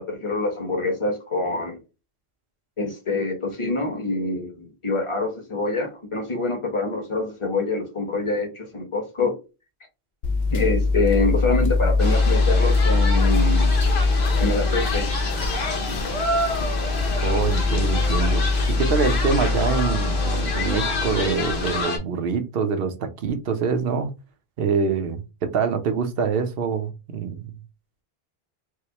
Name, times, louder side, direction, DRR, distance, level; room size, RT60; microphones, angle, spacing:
voice 1, 0.0-1.8 2.8-9.4 10.5-13.7 14.4-15.1, left 3 dB, 30° left, 1.1 m, -25 dB
sound 1, 10.2-21.8, left 3 dB, 55° left, 0.6 m, -22 dB
sound 2, 12.0-22.0, left 2 dB, 85° left, 1.3 m, -28 dB
voice 2, 17.2-24.1 24.6-27.5, right 5 dB, 70° right, 0.9 m, -25 dB
4.8 x 2.0 x 2.8 m
omnidirectional pair, 1.0 m